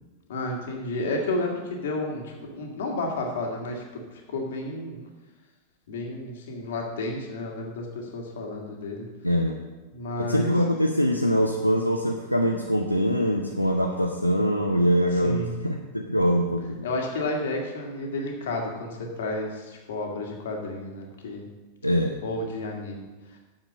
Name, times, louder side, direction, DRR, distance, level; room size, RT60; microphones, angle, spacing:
voice 1, 0.3-4.0 4.3-5.0 5.9-9.1 9.9-10.5 15.1-15.6 16.8-21.5 22.2-23.1, left 2 dB, 60° left, 1 dB, 2.1 m, -31 dB
voice 2, 9.2-9.6 10.2-16.9 21.8-22.2, equal, 90° left, 2 dB, 0.7 m, -23 dB
8.8 x 7.3 x 6.2 m, 1.2 s
figure-of-eight pair, 90°, 0 cm